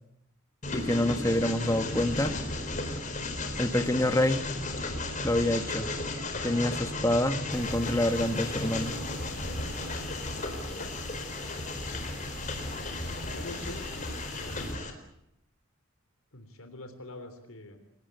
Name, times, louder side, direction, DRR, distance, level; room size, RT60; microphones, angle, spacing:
Train, 0.6-14.9, left 2 dB, 35° left, 4.2 m, -34 dB
voice 1, 0.7-2.3 3.6-4.4 5.2-5.9 6.4-9.0, left 1 dB, 15° left, 9 dB, 1.5 m, -27 dB
sound 1, 7.5-14.7, equal, ahead, 4.6 m, -47 dB
voice 2, 13.2-13.8 14.2-14.8 16.3-17.8, left 1 dB, 85° left, 7 dB, 3.4 m, -44 dB
28.5 x 18.5 x 8.2 m, 0.82 s
head